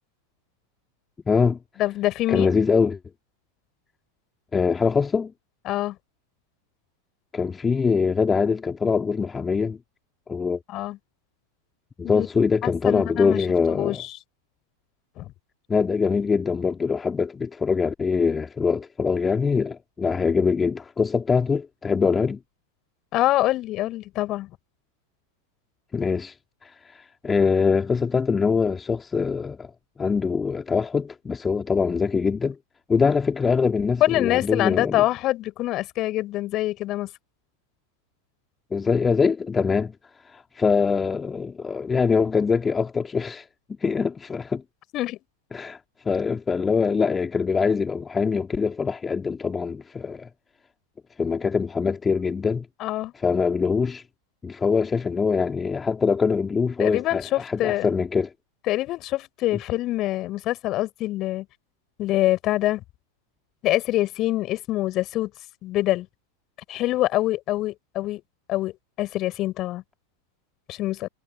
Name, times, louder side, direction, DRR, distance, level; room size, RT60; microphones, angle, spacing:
voice 1, 1.3-1.6 2.3-3.0 4.5-5.3 7.3-9.8 10.3-10.6 12.0-14.0 15.7-22.4 25.9-26.3 27.2-29.7 30.0-32.6 32.9-35.0 38.7-39.9 40.3-43.4 43.8-44.6 45.5-45.8 46.0-50.3 51.2-52.6 53.2-54.0 54.4-58.3, left 5 dB, 15° left, 3.3 m, -23 dB
voice 2, 1.8-2.5 5.7-6.0 10.7-11.0 12.0-12.3 12.6-14.1 15.2-15.3 23.1-24.5 34.0-37.1 44.9-45.2 52.8-53.1 56.8-57.9 58.7-61.4 62.0-62.8 63.6-65.3 65.6-66.1 66.7-68.2 68.5-68.7 69.0-69.8 70.7-71.1, left 16 dB, 35° left, 4.7 m, -25 dB
figure-of-eight pair, 90°, 0 cm